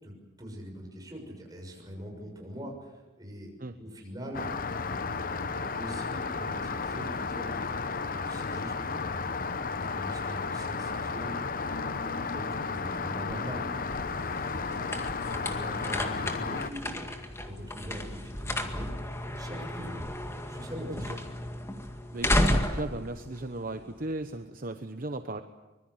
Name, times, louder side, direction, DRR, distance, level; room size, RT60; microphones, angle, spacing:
voice 1, 0.0-3.5 3.8-4.5 4.8-5.5 5.7-7.5 8.1-9.3 9.7-11.3 11.7-13.7 14.3-17.1 17.4-18.9 19.4-20.0 20.5-21.3, equal, 20° right, 1 dB, 6.5 m, -42 dB
Rain, 4.3-16.7, left 4 dB, 45° left, 0.9 m, -33 dB
sound 1, 13.6-24.2, left 1 dB, 15° left, 2.0 m, -33 dB
voice 2, 22.1-25.4, right 2 dB, 45° right, 8 dB, 1.0 m, -36 dB
25.0 x 21.5 x 8.0 m, 1.1 s
head